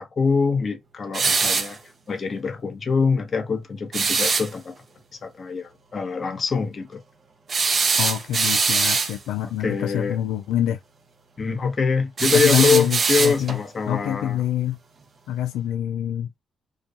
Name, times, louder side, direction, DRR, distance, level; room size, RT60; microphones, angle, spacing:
voice 1, 0.0-1.8 2.1-4.7 5.2-7.0 9.4-10.2 11.4-14.4, left 5 dB, 50° left, 0.8 m, -24 dB
sound 1, 1.1-1.8 3.9-4.5 7.5-9.2 12.2-13.6, right 4 dB, 50° right, 0.6 m, -22 dB
voice 2, 8.0-10.8 12.3-13.6 13.9-14.8 15.3-16.3, left 11 dB, 85° left, 0.3 m, -26 dB
2.3 x 2.3 x 2.5 m
supercardioid pair, 55°, 0 cm